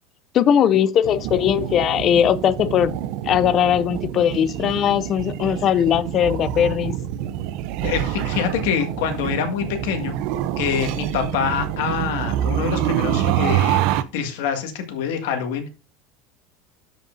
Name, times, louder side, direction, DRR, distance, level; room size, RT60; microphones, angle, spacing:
voice 1, 0.3-3.0 3.3-6.9, left 9 dB, 30° left, 0.4 m, -19 dB
sound 1, 1.0-14.0, right 12 dB, 50° right, 0.5 m, -26 dB
voice 2, 7.8-10.1 10.6-15.7, left 7 dB, 70° left, 1.8 m, -25 dB
13.0 x 5.3 x 2.6 m
supercardioid pair, 170°, 0 cm